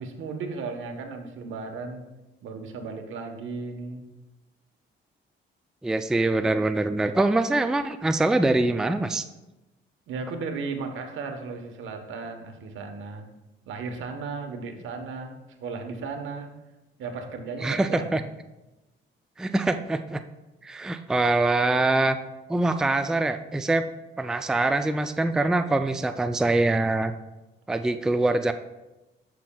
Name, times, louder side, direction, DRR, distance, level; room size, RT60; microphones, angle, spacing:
voice 1, 0.0-2.1 2.4-4.1 10.1-13.3 13.7-16.5 17.0-18.2, right 4 dB, 80° right, 5 dB, 1.2 m, -35 dB
voice 2, 5.8-9.2 17.6-18.2 19.4-20.2 20.6-22.2 22.5-23.8 24.2-27.1 27.7-28.5, right 2 dB, 5° right, 9 dB, 0.3 m, -24 dB
13.0 x 5.9 x 2.3 m, 1.0 s
cardioid pair, 90°, 20 cm